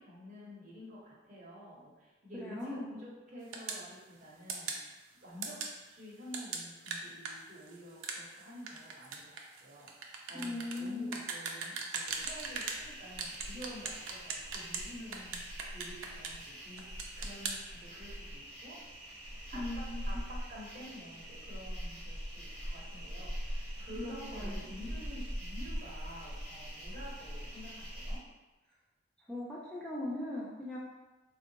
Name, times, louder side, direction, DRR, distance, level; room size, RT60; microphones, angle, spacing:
voice 1, 0.0-5.6 5.9-15.4 15.7-16.9 17.2-18.8 19.5-28.2, equal, 40° right, -5 dB, 0.9 m, -49 dB
voice 2, 2.4-3.0 10.3-11.2 19.5-20.2 24.0-24.7 29.3-30.8, left 1 dB, 5° left, -7 dB, 0.3 m, -39 dB
sound 1, 3.5-3.8 4.5-4.8 5.4-5.7 6.3-12.8 13.2-14.8 15.1-16.5 16.8-17.6, right 5 dB, 85° right, 0.4 m, -39 dB
sound 2, 12.0-28.2, equal, 35° left, 0.9 m, -43 dB
3.6 x 2.3 x 2.8 m, 1.1 s
head